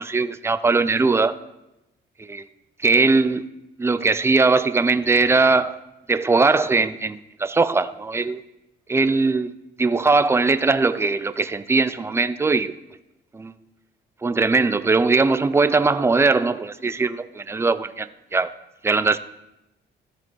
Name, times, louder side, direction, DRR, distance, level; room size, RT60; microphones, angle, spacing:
voice 1, 0.0-1.4 2.3-2.4 2.8-3.5 3.8-5.8 6.1-8.4 8.9-9.5 9.8-12.7 13.3-13.5 14.2-18.1 18.3-18.5 18.8-19.2, right 3 dB, 15° right, 0.4 m, -20 dB
14.5 x 4.9 x 3.9 m
cardioid pair, 90°, 20 cm